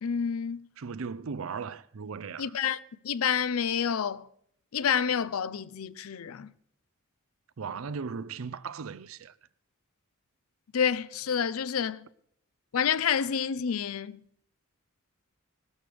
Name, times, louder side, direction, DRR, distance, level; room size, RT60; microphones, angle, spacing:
voice 1, 0.0-0.7 2.4-2.8 3.0-4.3 4.7-6.5 10.7-12.1 12.7-14.2, left 7 dB, 75° left, 0.5 m, -28 dB
voice 2, 0.8-2.6 7.6-9.3, right 5 dB, 70° right, 0.5 m, -37 dB
18.5 x 12.5 x 3.4 m
head